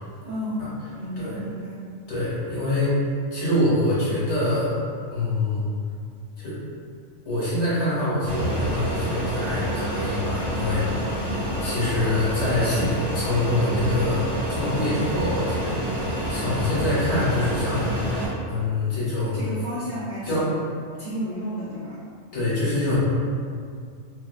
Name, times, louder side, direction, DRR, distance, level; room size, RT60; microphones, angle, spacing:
voice 1, 0.2-1.8 19.3-20.6 21.0-22.0, equal, 75° right, -11 dB, 0.4 m, -32 dB
voice 2, 2.1-3.0 3.3-4.8 5.1-5.7 6.4-6.6 7.2-11.1 11.6-14.2 14.5-18.1 18.5-19.4 20.2-20.5 22.3-23.0, left 1 dB, 60° left, -9 dB, 1.0 m, -25 dB
Fixed-wing aircraft airplane, 8.3-18.3, right 1 dB, 50° right, 0.7 m, -28 dB
2.5 x 2.2 x 2.3 m, 2.2 s
omnidirectional pair, 1.4 m